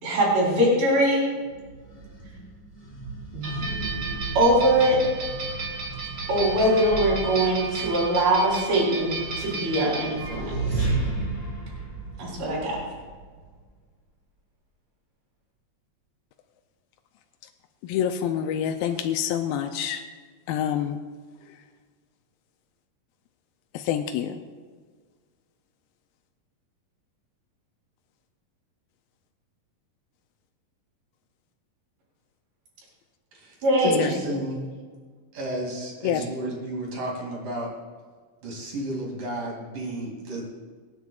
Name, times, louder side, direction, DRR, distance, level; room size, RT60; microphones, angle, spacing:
voice 1, 0.0-1.3 3.3-3.5 4.4-5.0 6.3-10.9 12.2-12.8 33.6-34.1, right 1 dB, 85° right, -5 dB, 5.6 m, -22 dB
sound 1, 1.4-13.6, right 3 dB, 10° left, 3.1 m, -34 dB
sound 2, 3.4-10.5, right 4 dB, 35° right, 2.5 m, -34 dB
voice 2, 17.8-20.0 20.5-21.0 23.7-24.4 33.8-34.1 36.0-36.2, left 9 dB, 85° left, 5 dB, 2.4 m, -27 dB
voice 3, 33.9-34.6 35.3-37.7 38.4-40.5, right 1 dB, 65° right, -2 dB, 4.1 m, -32 dB
26.0 x 9.7 x 2.4 m, 1.6 s
omnidirectional pair, 4.1 m